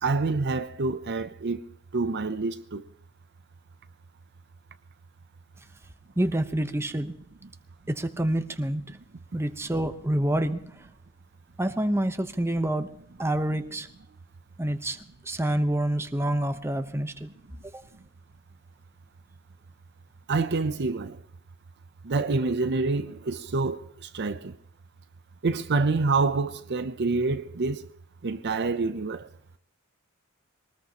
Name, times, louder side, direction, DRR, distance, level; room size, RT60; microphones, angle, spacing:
voice 1, 0.0-1.6 1.9-2.8 20.3-21.2 22.0-24.5 25.4-27.9 28.2-29.3, right 3 dB, 50° right, 0.6 m, -27 dB
voice 2, 6.2-7.1 7.9-8.8 9.3-10.6 11.6-12.9 13.2-13.9 14.6-15.0 15.3-17.3 17.7-17.8, right 1 dB, 10° right, 0.9 m, -27 dB
23.0 x 19.5 x 3.0 m
head